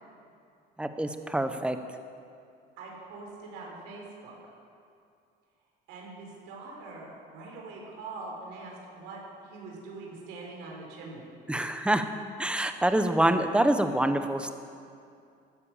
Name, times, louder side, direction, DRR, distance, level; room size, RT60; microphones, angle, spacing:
voice 1, 0.8-1.8 11.5-12.0 12.4-14.5, right 1 dB, 5° right, 8 dB, 1.0 m, -26 dB
voice 2, 2.8-4.4 5.9-11.3, right 3 dB, 90° right, -2 dB, 4.3 m, -43 dB
16.0 x 11.0 x 7.2 m, 2.4 s
cardioid pair, 115°, 19 cm